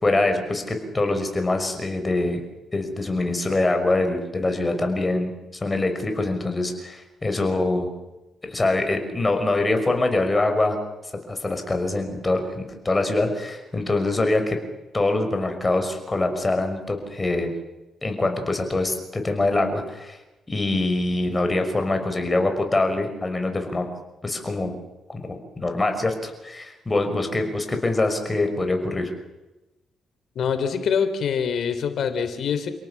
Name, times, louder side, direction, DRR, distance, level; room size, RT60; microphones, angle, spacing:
voice 1, 0.0-2.4 2.7-5.3 5.6-7.9 8.4-10.8 11.3-14.6 14.9-17.5 18.0-20.2 20.5-23.9 24.2-24.8 25.1-29.1, left 2 dB, 20° left, 6 dB, 5.9 m, -24 dB
voice 2, 30.3-32.7, left 7 dB, 65° left, 10 dB, 3.3 m, -24 dB
29.5 x 18.0 x 7.4 m, 1.0 s
cardioid pair, 90°, 0 cm